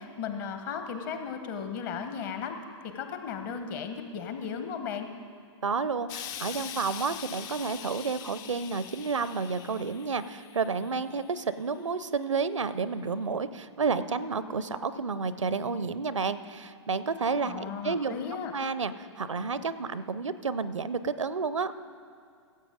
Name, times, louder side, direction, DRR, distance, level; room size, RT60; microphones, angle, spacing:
voice 1, 0.0-2.6 2.8-5.1 17.4-18.5, left 6 dB, 40° left, 7 dB, 1.1 m, -35 dB
voice 2, 5.6-18.1 18.5-21.7, right 5 dB, 80° right, 14 dB, 0.5 m, -31 dB
Explosion, 6.1-11.4 12.2-12.3, left 9 dB, 25° left, 0.4 m, -43 dB
16.0 x 7.7 x 5.0 m, 2.3 s
figure-of-eight pair, 110°, 16 cm